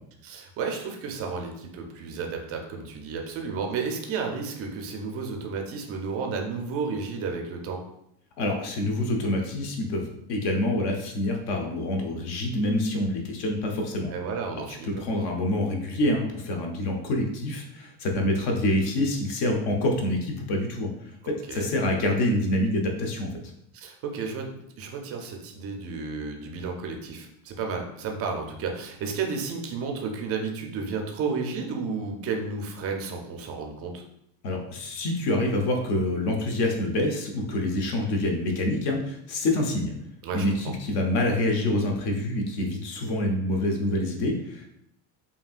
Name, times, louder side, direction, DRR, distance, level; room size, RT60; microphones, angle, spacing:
voice 1, 0.2-7.8 14.1-15.0 21.2-21.7 23.7-34.0 40.2-40.7, right 5 dB, 30° right, 2 dB, 0.4 m, -32 dB
voice 2, 8.4-14.1 14.8-20.9 21.3-23.3 34.4-39.9 40.3-44.7, left 1 dB, 55° left, 2 dB, 0.8 m, -26 dB
5.2 x 2.8 x 2.4 m, 0.79 s
cardioid pair, 155°, 50 cm